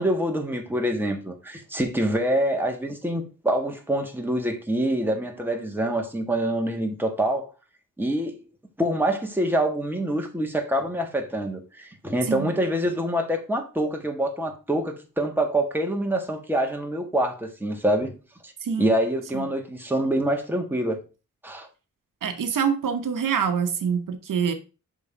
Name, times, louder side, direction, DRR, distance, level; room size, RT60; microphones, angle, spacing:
voice 1, 0.0-7.5 8.0-8.4 8.8-18.2 18.4-18.5 18.8-21.0 21.4-21.7, right 1 dB, 5° right, 1.5 m, -25 dB
voice 2, 22.2-24.5, right 7 dB, 85° right, 0.9 m, -25 dB
6.4 x 3.8 x 5.0 m
wide cardioid pair, 100°, 32 cm